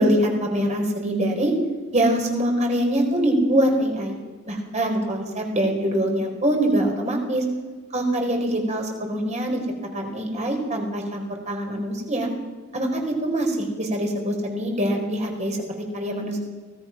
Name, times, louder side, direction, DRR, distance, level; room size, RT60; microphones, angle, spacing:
voice 1, 0.0-1.5 1.9-4.1 4.5-7.4 7.9-9.6 9.9-12.3 12.7-16.4, right 1 dB, 35° right, 2 dB, 4.7 m, -24 dB
24.0 x 18.0 x 6.0 m, 1.4 s
head